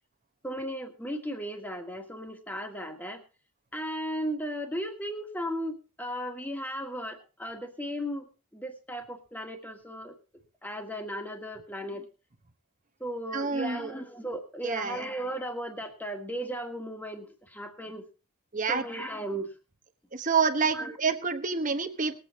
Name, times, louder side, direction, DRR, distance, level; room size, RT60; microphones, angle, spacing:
voice 1, 0.4-3.2 3.7-8.3 8.5-10.1 10.6-12.0 13.0-18.0 18.7-19.5 20.7-20.9, equal, 10° left, 4 dB, 1.7 m, -36 dB
voice 2, 13.3-13.9 14.6-15.0 18.5-18.8 20.1-22.2, right 5 dB, 35° right, 8 dB, 1.1 m, -28 dB
20.5 x 8.4 x 4.2 m, 0.33 s
head